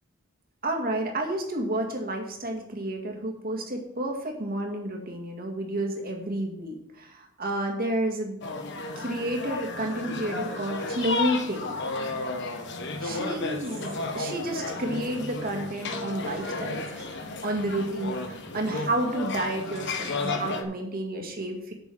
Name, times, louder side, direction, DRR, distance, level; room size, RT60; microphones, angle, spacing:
voice 1, 0.6-8.4 9.0-11.8 13.0-21.7, right 1 dB, 45° right, 2 dB, 2.0 m, -31 dB
sound 1, 8.4-20.6, left 3 dB, 60° left, 1.2 m, -33 dB
8.2 x 6.2 x 6.2 m, 0.79 s
head